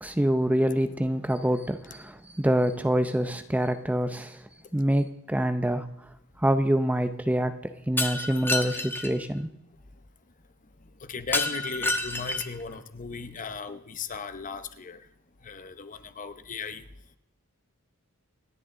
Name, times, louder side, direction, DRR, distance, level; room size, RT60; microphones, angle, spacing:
voice 1, 0.0-5.9 6.4-7.6 7.9-9.5, right 1 dB, 5° right, 0.6 m, -26 dB
Shatter, 8.0-9.1 11.3-12.6, left 2 dB, 10° left, 1.1 m, -29 dB
voice 2, 11.0-15.0 15.4-16.8, left 5 dB, 35° left, 0.8 m, -36 dB
27.5 x 10.5 x 3.7 m
head